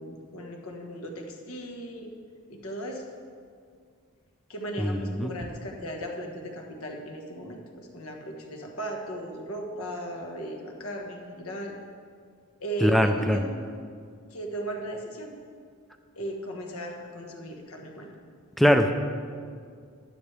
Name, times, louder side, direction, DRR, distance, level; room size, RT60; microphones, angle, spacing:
voice 1, 0.0-2.1 2.5-3.0 4.5-11.7 12.6-13.6 14.3-15.3 16.2-18.1, right 1 dB, 75° left, 2 dB, 1.4 m, -36 dB
voice 2, 4.8-5.3 12.8-13.4 18.6-18.9, equal, ahead, 6 dB, 0.4 m, -22 dB
12.0 x 10.0 x 3.4 m, 2.1 s
head